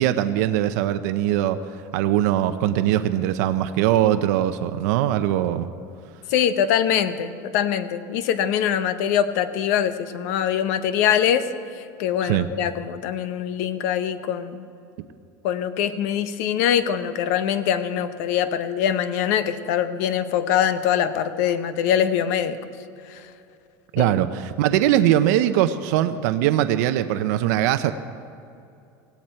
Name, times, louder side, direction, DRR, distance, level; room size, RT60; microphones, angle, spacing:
voice 1, 0.0-1.6 1.9-5.7 12.2-12.5 23.9-27.9, right 12 dB, 70° right, 10 dB, 0.7 m, -21 dB
voice 2, 6.3-11.5 12.0-14.7 15.4-22.6 23.1-23.2 24.0-24.1, left 9 dB, 65° left, 11 dB, 0.9 m, -23 dB
17.0 x 16.5 x 4.5 m, 2.6 s
supercardioid pair, 160°, 9 cm